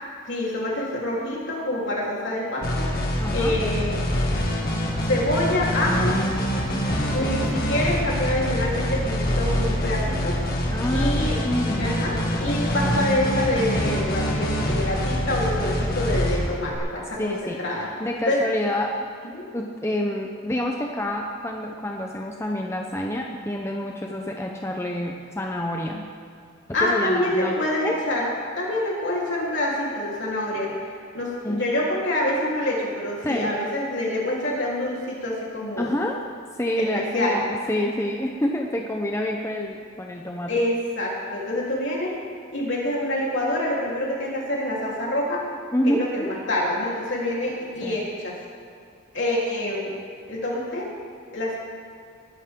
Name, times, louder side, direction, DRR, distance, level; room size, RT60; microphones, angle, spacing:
voice 1, 0.2-3.9 5.0-6.2 7.1-10.4 10.9-11.4 11.8-17.9 18.3-18.4 19.3-19.5 26.7-30.7 31.1-35.9 36.8-37.4 40.5-42.2 42.5-45.4 45.9-48.4 49.1-49.9 50.3-50.9 51.3-51.6, left 1 dB, 65° left, -4 dB, 3.8 m, -26 dB
sound 1, 2.6-16.8, equal, 50° left, 2.2 m, -25 dB
voice 2, 3.2-3.6 7.1-7.4 10.7-11.9 17.2-17.6 18.0-18.9 19.5-26.0 26.8-27.6 27.8-28.0 31.4-31.7 33.2-33.5 35.8-36.2 36.6-40.5 45.7-46.3 47.8-48.0, left 1 dB, 15° left, 1 dB, 0.8 m, -28 dB
20.0 x 11.5 x 3.8 m, 2.3 s
head